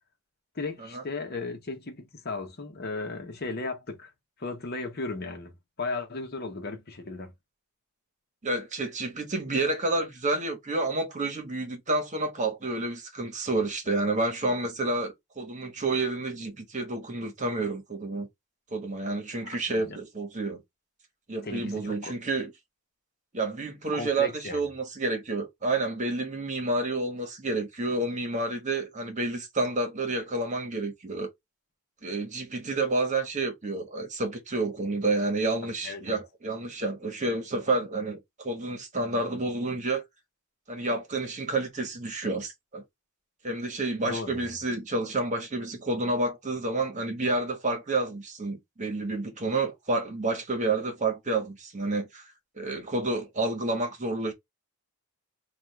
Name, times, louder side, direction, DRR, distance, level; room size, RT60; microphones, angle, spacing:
voice 1, 0.5-4.1 4.4-7.3 19.4-20.0 21.4-22.1 23.9-24.6 35.6-36.2 44.0-44.5, left 3 dB, 50° left, 1.0 m, -36 dB
voice 2, 8.4-18.3 18.7-20.6 21.3-22.5 23.3-31.3 32.0-40.0 40.7-42.8 43.4-52.3 52.6-54.3, right 2 dB, 35° right, 1.2 m, -29 dB
3.5 x 2.5 x 4.5 m
head